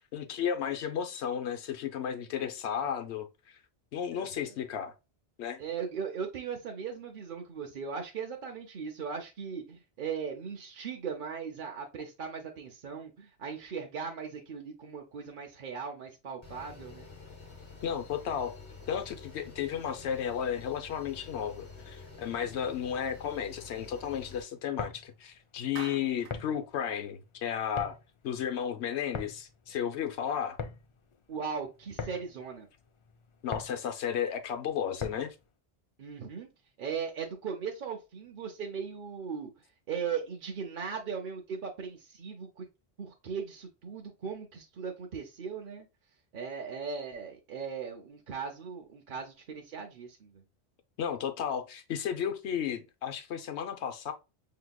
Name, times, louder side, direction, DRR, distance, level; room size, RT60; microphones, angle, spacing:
voice 1, 0.0-3.3 3.9-4.9 5.4-5.6 17.8-18.5 18.9-27.9 28.2-30.6 33.4-35.3 51.0-54.1, left 8 dB, 85° left, 1.0 m, -33 dB
voice 2, 5.6-17.1 31.3-32.7 36.0-36.5 36.8-39.5 39.9-42.7 43.0-45.9 46.3-50.4, right 6 dB, 55° right, 0.8 m, -38 dB
sound 1, 16.4-24.4, left 4 dB, 30° left, 1.1 m, -49 dB
sound 2, 24.6-35.5, left 5 dB, 55° left, 0.3 m, -43 dB
Clapping, 25.8-26.4, right 9 dB, 85° right, 0.9 m, -44 dB
6.0 x 2.9 x 2.2 m
omnidirectional pair, 1.1 m